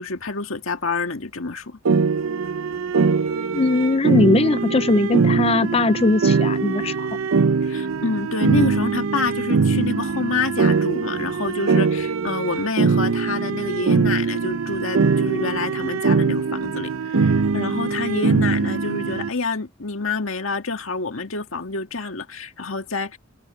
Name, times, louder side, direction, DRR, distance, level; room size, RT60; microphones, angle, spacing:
voice 1, 0.0-1.8 7.6-23.2, left 3 dB, 70° left, 1.9 m, -27 dB
sound 1, 1.9-19.3, right 4 dB, 75° right, 0.6 m, -22 dB
voice 2, 3.5-7.1, left 3 dB, 30° left, 0.4 m, -20 dB
head